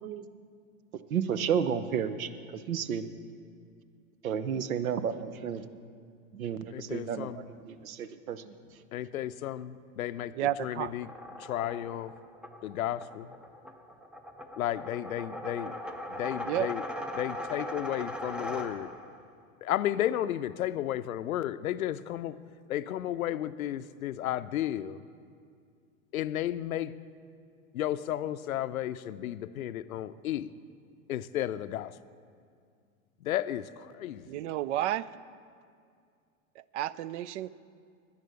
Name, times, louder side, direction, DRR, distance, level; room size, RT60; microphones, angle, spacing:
voice 1, 1.1-3.1 4.2-5.6 6.3-8.5, right 7 dB, 85° right, 13 dB, 0.8 m, -32 dB
voice 2, 6.7-7.4 8.9-10.3 10.6-11.1 11.4-12.2 12.6-13.3 14.6-15.7 16.1-16.8 17.1-18.9 19.6-22.4 22.7-25.0 26.1-26.9 27.7-30.5 31.1-31.9 33.2-34.3, left 12 dB, 90° left, 14 dB, 0.5 m, -33 dB
voice 3, 10.3-10.9 16.4-16.7 34.3-35.1 36.6-37.5, right 13 dB, 60° right, 19 dB, 0.5 m, -31 dB
sound 1, 10.9-19.2, left 1 dB, ahead, 0.4 m, -40 dB
11.0 x 9.7 x 6.4 m, 2.2 s
hypercardioid pair, 110°, 41 cm